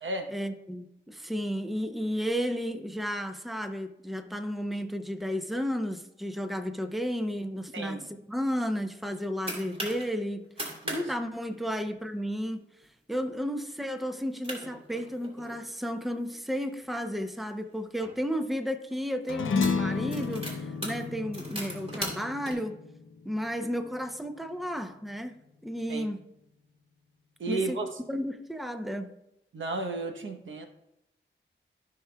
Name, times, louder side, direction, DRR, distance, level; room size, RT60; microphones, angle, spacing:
voice 1, 0.3-8.0 8.3-10.5 10.9-12.6 13.1-20.4 20.8-22.8 23.2-25.4 25.6-26.2 27.5-27.8 28.1-29.2, equal, ahead, 7 dB, 0.7 m, -33 dB
voice 2, 7.7-8.1 10.8-11.1 25.9-26.1 27.4-27.9 29.5-30.7, right 2 dB, 80° right, 5 dB, 1.0 m, -33 dB
sound 1, 8.9-10.0 10.4-11.0 11.3-11.4 11.7-12.1 12.6-12.9 13.3-13.4 14.1-14.2 14.4-15.6 16.2-18.1 18.9-19.0 19.4-22.5, right 1 dB, 30° right, 3.1 m, -39 dB
sound 2, 19.3-24.0, left 5 dB, 90° left, 0.7 m, -32 dB
16.0 x 5.8 x 2.3 m, 0.84 s
wide cardioid pair, 75°, 20 cm